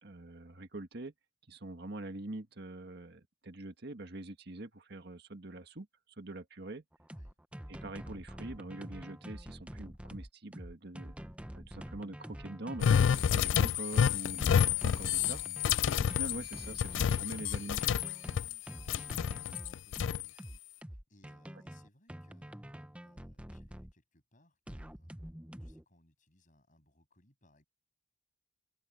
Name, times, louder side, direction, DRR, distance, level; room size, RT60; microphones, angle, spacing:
voice 1, 0.0-1.1 1.5-5.9 6.2-6.8 7.7-11.1 11.5-15.4 16.0-17.8, right 2 dB, 60° right, 1.7 m, -44 dB
sound 1, 6.9-23.9 24.7-25.8, equal, 5° right, 0.9 m, -46 dB
sound 2, 12.8-18.6 18.9-20.3, left 8 dB, 80° left, 0.3 m, -29 dB
voice 2, 18.3-22.6 23.0-25.3 25.6-27.6, left 1 dB, 45° left, 7.5 m, -67 dB
open air
head